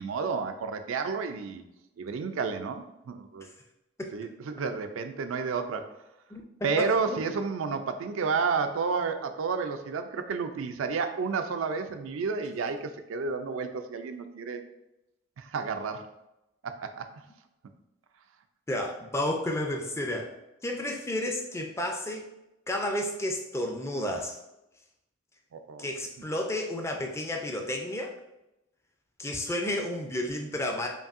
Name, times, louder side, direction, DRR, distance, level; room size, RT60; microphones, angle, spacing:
voice 1, 0.0-1.6 2.0-3.5 4.1-5.9 6.6-14.6 15.4-16.0 16.6-17.1 25.5-25.9, right 5 dB, 80° right, 7 dB, 0.4 m, -31 dB
voice 2, 6.3-7.2 18.7-20.4 20.6-22.3 22.7-24.4 25.8-28.1 29.2-30.9, left 1 dB, 15° left, 3 dB, 0.3 m, -32 dB
5.2 x 2.6 x 2.5 m, 0.92 s
head